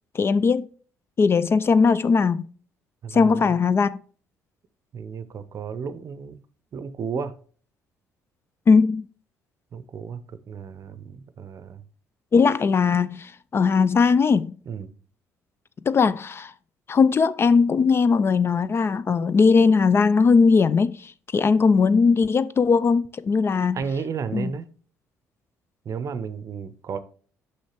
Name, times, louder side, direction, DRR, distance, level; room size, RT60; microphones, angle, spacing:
voice 1, 0.1-0.7 1.2-2.4 3.1-4.0 8.7-9.1 12.3-14.6 15.9-16.5 16.9-23.8 24.3-24.5, left 5 dB, 30° left, 0.3 m, -19 dB
voice 2, 3.0-3.4 4.9-6.4 6.7-7.3 9.7-10.2 10.5-11.8 14.7-14.9 23.7-24.7 25.9-27.0, right 6 dB, 45° right, 0.6 m, -33 dB
6.3 x 5.7 x 3.0 m
figure-of-eight pair, 50°, 8 cm